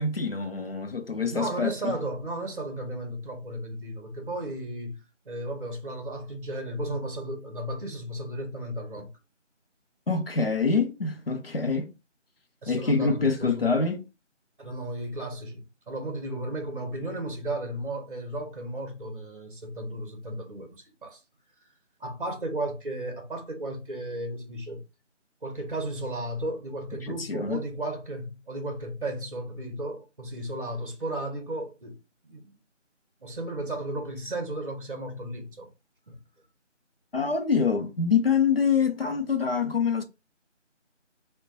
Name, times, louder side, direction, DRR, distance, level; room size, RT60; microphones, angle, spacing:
voice 1, 0.0-1.9 10.1-11.9 12.7-14.0 27.0-27.6 37.1-40.0, left 5 dB, 50° left, 0.5 m, -25 dB
voice 2, 1.3-9.1 12.6-13.7 14.6-21.2 22.0-24.8 25.4-32.0 32.2-32.5 33.2-35.7 36.1-36.2, right 1 dB, 45° right, 0.7 m, -34 dB
2.4 x 2.2 x 3.9 m
figure-of-eight pair, 165°, 37 cm